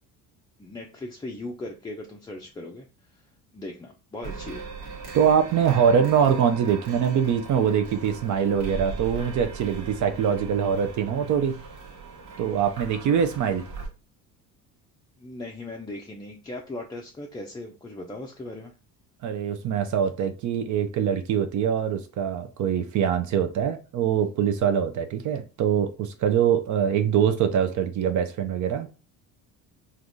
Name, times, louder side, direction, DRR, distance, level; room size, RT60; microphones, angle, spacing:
voice 1, 0.6-2.9 3.5-4.7 15.2-18.7, left 2 dB, 10° left, 0.4 m, -38 dB
sound 1, 4.2-13.9, right 4 dB, 75° right, 1.4 m, -39 dB
voice 2, 5.1-11.6 12.4-13.6 19.2-28.9, right 8 dB, 50° right, 0.5 m, -23 dB
3.4 x 2.5 x 2.6 m
supercardioid pair, 90°, 38 cm